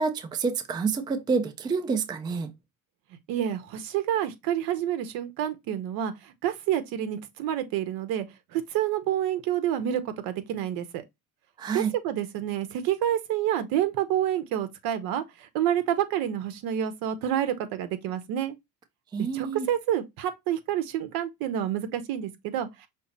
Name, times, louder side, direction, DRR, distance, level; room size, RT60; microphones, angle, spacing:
voice 1, 0.0-2.5 11.6-11.9 19.1-19.7, right 5 dB, 10° right, 0.4 m, -28 dB
voice 2, 3.3-8.3 8.5-11.0 11.7-18.6 19.3-22.9, right 11 dB, 70° right, 0.9 m, -28 dB
5.6 x 2.0 x 4.1 m
cardioid pair, 145°, 36 cm